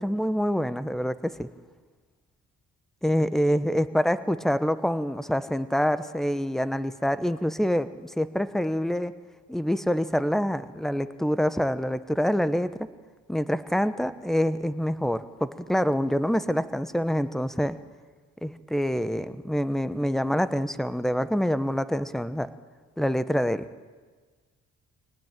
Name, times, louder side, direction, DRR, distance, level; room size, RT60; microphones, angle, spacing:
voice 1, 0.0-1.5 3.0-9.1 9.5-12.7 13.3-17.8 18.4-22.5 23.0-23.6, equal, ahead, 13 dB, 1.1 m, -26 dB
24.5 x 18.5 x 9.1 m, 1.4 s
cardioid pair, 90°, 30 cm